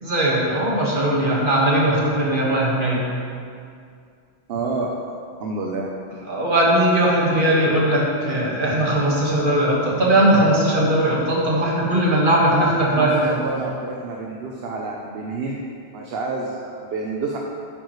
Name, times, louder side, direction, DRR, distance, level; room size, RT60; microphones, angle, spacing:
voice 1, 0.0-3.0 6.3-13.4, right 1 dB, 50° right, -4 dB, 1.8 m, -19 dB
voice 2, 4.5-4.9 5.4-5.9 12.5-17.4, right 3 dB, 70° right, 0 dB, 1.0 m, -29 dB
9.8 x 8.7 x 3.2 m, 2.3 s
omnidirectional pair, 1.1 m